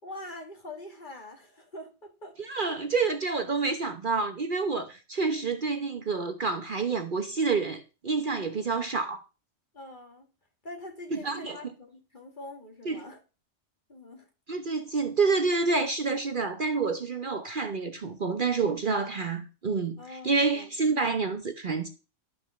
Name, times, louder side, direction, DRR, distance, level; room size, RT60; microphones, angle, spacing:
voice 1, 0.0-2.4 2.7-2.8 9.7-10.3 10.6-13.2 13.9-14.3 20.0-20.7, left 1 dB, 40° left, 2.3 m, -44 dB
voice 2, 2.4-9.2 11.2-11.6 12.9-13.0 14.5-21.9, right 4 dB, 45° right, 1.0 m, -28 dB
11.5 x 5.4 x 6.4 m
omnidirectional pair, 1.3 m